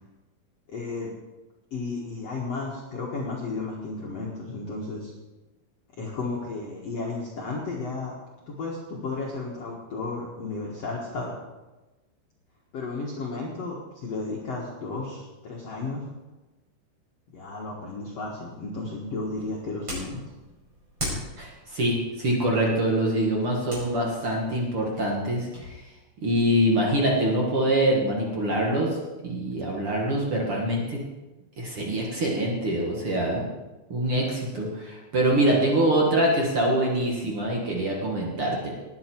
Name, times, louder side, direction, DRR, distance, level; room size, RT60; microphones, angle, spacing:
voice 1, 0.7-1.1 1.7-5.1 6.0-8.1 8.5-11.3 12.7-16.0 17.3-20.2, left 3 dB, 75° left, -3 dB, 1.4 m, -33 dB
sound 1, 19.0-25.7, equal, 25° right, 5.7 m, -40 dB
voice 2, 21.4-25.8 26.2-31.0 31.6-33.5 33.9-38.7, right 1 dB, 55° right, -2 dB, 1.5 m, -24 dB
18.5 x 9.6 x 4.6 m, 1.1 s
omnidirectional pair, 5.5 m